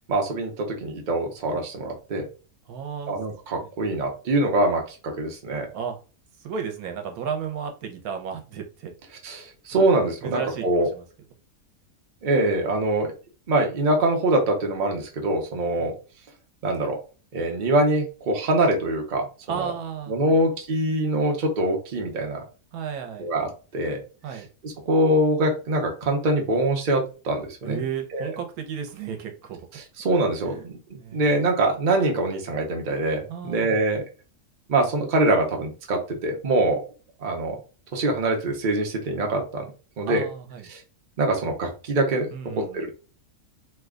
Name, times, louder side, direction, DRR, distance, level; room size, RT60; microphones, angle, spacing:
voice 1, 0.1-2.3 3.1-5.7 9.2-10.9 12.2-13.1 13.5-15.9 16.6-17.0 17.3-19.7 20.1-22.4 23.2-24.0 24.3-27.8 28.1-28.4 29.7-30.8 31.1-34.0 34.7-36.8 37.2-37.6 37.9-39.6 40.0-40.3 40.7-40.8 41.2-42.3 42.6-42.9, right 2 dB, 40° right, 1 dB, 0.8 m, -24 dB
voice 2, 2.7-3.2 5.7-6.0 6.4-8.9 9.8-9.9 10.2-11.0 15.8-15.9 19.5-20.1 22.7-23.3 24.2-24.5 27.6-29.6 30.5-30.6 31.0-31.2 33.3-33.8 40.1-40.6 42.3-42.8, right 7 dB, 85° right, 5 dB, 1.1 m, -33 dB
2.9 x 2.2 x 3.6 m, 0.34 s
omnidirectional pair, 1.5 m